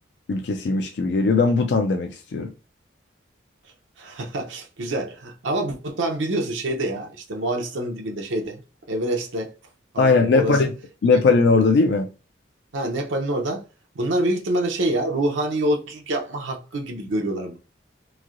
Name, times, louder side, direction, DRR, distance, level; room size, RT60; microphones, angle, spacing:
voice 1, 0.3-2.5 10.0-10.7 11.0-12.1, left 4 dB, 65° left, 0.4 m, -19 dB
voice 2, 4.0-8.6 8.9-9.5 9.9-10.6 11.1-11.2 12.7-13.6 13.9-17.6, right 1 dB, 85° right, 0.6 m, -26 dB
3.1 x 2.6 x 2.5 m
head